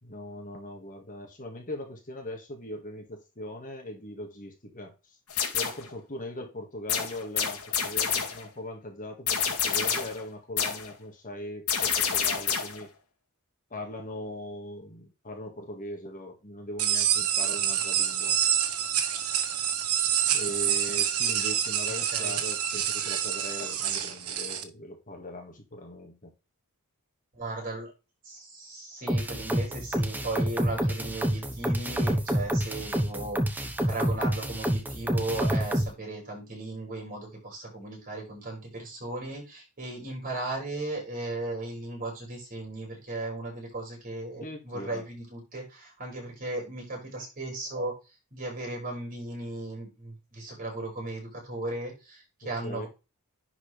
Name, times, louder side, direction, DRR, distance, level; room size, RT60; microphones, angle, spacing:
voice 1, 0.0-5.2 5.5-12.9 13.7-18.4 20.3-26.3 44.3-45.1 52.6-52.9, left 1 dB, 40° left, 1.8 m, -40 dB
sound 1, 5.3-5.9 6.9-8.5 9.3-10.2 10.6-10.9 11.7-12.8, left 7 dB, 85° left, 2.3 m, -28 dB
sound 2, 16.8-24.6, right 9 dB, 85° right, 1.4 m, -27 dB
voice 2, 27.3-27.9 28.2-47.9 48.3-52.9, right 2 dB, 40° right, 5.5 m, -36 dB
sound 3, 29.1-35.9, equal, 10° right, 1.1 m, -28 dB
11.0 x 4.8 x 3.4 m
head